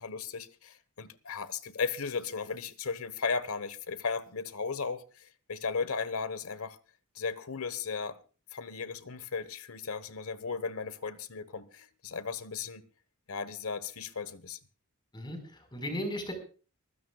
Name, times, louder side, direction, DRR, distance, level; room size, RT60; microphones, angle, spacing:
voice 1, 0.0-6.8 7.1-8.2 8.5-12.8 13.3-14.6, left 5 dB, 80° left, 1.2 m, -36 dB
voice 2, 15.1-16.3, equal, 20° left, 4.8 m, -36 dB
25.0 x 15.5 x 2.4 m
head